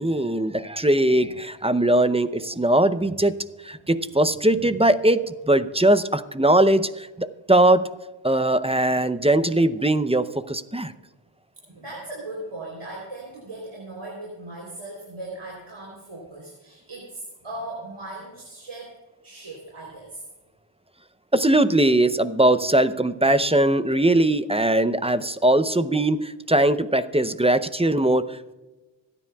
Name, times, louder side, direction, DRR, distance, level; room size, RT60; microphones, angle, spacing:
voice 1, 0.0-3.3 3.6-7.9 8.2-10.9 21.3-28.5, right 1 dB, 10° right, 12 dB, 0.6 m, -20 dB
voice 2, 11.7-18.9 19.2-20.2, right 2 dB, 85° right, -4 dB, 3.6 m, -38 dB
26.0 x 9.9 x 2.3 m, 1.1 s
wide cardioid pair, 45°, 49 cm